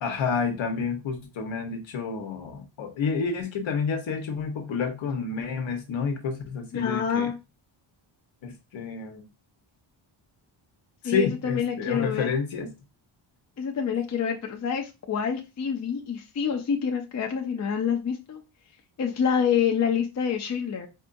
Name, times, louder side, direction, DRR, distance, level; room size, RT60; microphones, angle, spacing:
voice 1, 0.0-7.3 8.4-9.2 11.0-12.7, left 5 dB, 70° left, 1.1 m, -29 dB
voice 2, 6.7-7.3 11.0-12.3 13.6-18.4 19.0-20.9, left 7 dB, 35° left, 0.6 m, -27 dB
4.6 x 2.7 x 2.6 m
cardioid pair, 120°, 49 cm